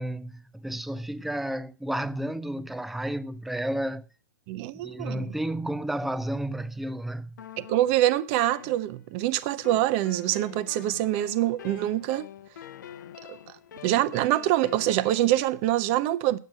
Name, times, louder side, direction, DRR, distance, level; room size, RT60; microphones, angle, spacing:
voice 1, 0.0-4.1 4.8-7.4, right 1 dB, ahead, 0.4 m, -32 dB
voice 2, 4.5-5.3 7.6-12.3 13.3-13.4 13.8-16.4, right 14 dB, 45° right, 0.7 m, -25 dB
sound 1, 7.4-9.2 9.6-15.4, left 9 dB, 75° left, 0.7 m, -45 dB
9.4 x 7.6 x 6.3 m
hypercardioid pair, 125°, 10 cm